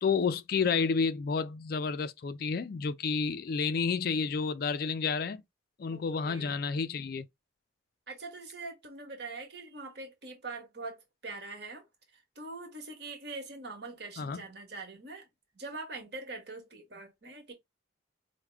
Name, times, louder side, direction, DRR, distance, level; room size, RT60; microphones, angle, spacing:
voice 1, 0.0-5.4 5.8-7.3 14.2-14.4, left 5 dB, 50° left, 0.3 m, -30 dB
voice 2, 5.9-6.7 8.1-11.8 12.1-15.3 15.5-17.5, right 3 dB, 60° right, 1.3 m, -43 dB
4.8 x 2.1 x 3.4 m
head